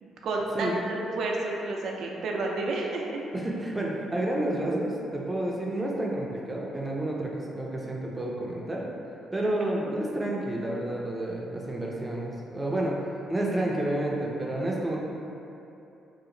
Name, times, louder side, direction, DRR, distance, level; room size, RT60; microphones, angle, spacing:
voice 1, 0.0-3.2 9.4-9.9, right 2 dB, 70° right, -1 dB, 0.4 m, -31 dB
voice 2, 3.3-8.8 9.3-13.0 13.3-15.0, right 1 dB, 15° right, -3 dB, 0.5 m, -30 dB
2.9 x 2.4 x 3.7 m, 2.9 s
cardioid pair, 90°, 0 cm